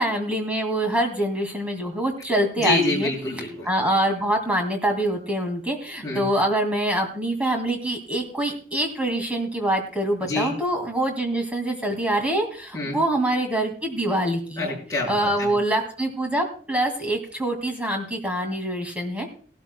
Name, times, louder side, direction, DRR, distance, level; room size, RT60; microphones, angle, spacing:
voice 1, 0.0-3.1 3.7-14.8 15.1-19.3, right 1 dB, 10° right, 3 dB, 2.2 m, -25 dB
voice 2, 2.6-3.7 6.0-6.3 10.2-10.5 12.7-13.0 14.6-15.5, left 2 dB, 20° left, -3 dB, 5.9 m, -26 dB
18.5 x 12.5 x 2.2 m, 0.41 s
head